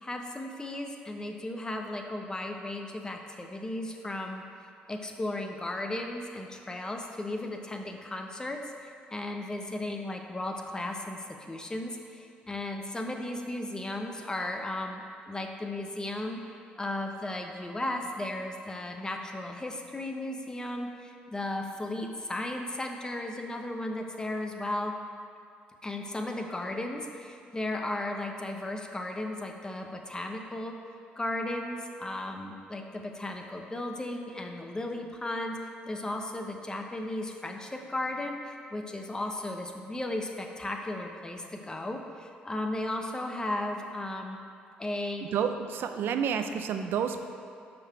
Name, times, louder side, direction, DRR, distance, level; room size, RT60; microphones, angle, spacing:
voice 1, 0.0-4.4 4.9-16.4 16.8-25.0 25.8-30.8 31.2-35.6 35.9-44.4 44.8-45.3, left 1 dB, 20° left, 3 dB, 0.8 m, -35 dB
voice 2, 45.3-47.2, right 7 dB, 65° right, 8 dB, 0.5 m, -29 dB
6.0 x 4.9 x 5.8 m, 2.5 s
supercardioid pair, 70°, 4 cm